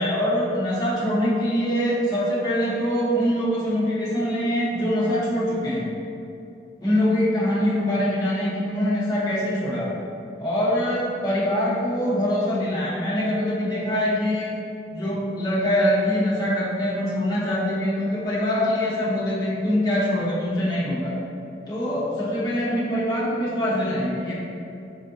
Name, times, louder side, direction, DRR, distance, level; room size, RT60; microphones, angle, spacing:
voice 1, 0.0-5.8 6.8-9.9 10.4-14.6 14.9-21.2 21.7-24.3, equal, 20° left, -7 dB, 0.9 m, -23 dB
4.6 x 4.2 x 2.5 m, 2.7 s
head